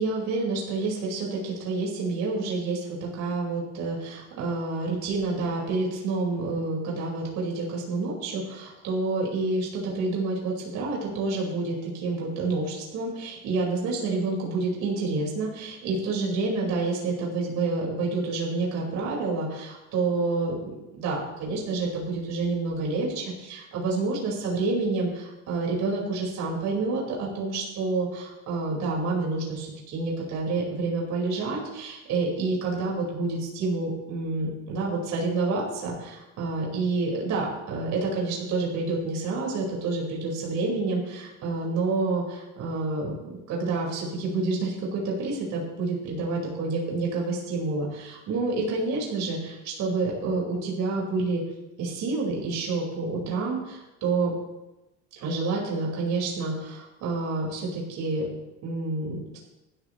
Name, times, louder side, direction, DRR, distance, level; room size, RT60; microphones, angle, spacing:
voice 1, 0.0-51.4 51.8-54.3 55.2-58.3 58.6-59.4, right 3 dB, 55° right, -3 dB, 5.2 m, -28 dB
19.0 x 13.0 x 3.2 m, 1.0 s
cardioid pair, 130°, 34 cm